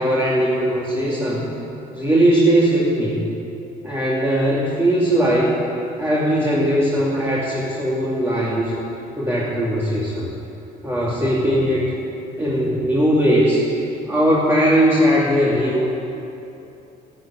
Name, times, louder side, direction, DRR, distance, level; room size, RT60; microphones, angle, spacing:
voice 1, 0.0-1.5 1.9-3.3 3.8-5.5 6.0-8.7 9.2-10.3 10.8-11.9 12.4-13.6 14.1-15.9, equal, 15° right, -6 dB, 2.8 m, -19 dB
14.5 x 11.5 x 8.6 m, 2.9 s
cardioid pair, 110°, 17 cm